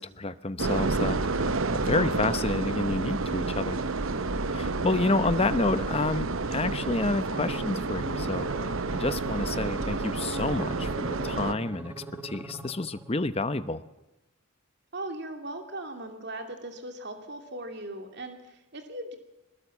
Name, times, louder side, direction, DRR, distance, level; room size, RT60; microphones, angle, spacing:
voice 1, 0.0-3.8 4.5-11.9 12.2-13.8, left 2 dB, 25° left, 12 dB, 0.8 m, -29 dB
sound 1, 0.6-11.5, right 3 dB, 65° right, 0.9 m, -30 dB
voice 2, 4.4-4.8 14.9-19.2, right 1 dB, 50° right, 5 dB, 2.7 m, -39 dB
sound 2, 5.3-13.3, right 2 dB, 10° right, 1.4 m, -43 dB
22.5 x 20.0 x 7.4 m, 1.0 s
head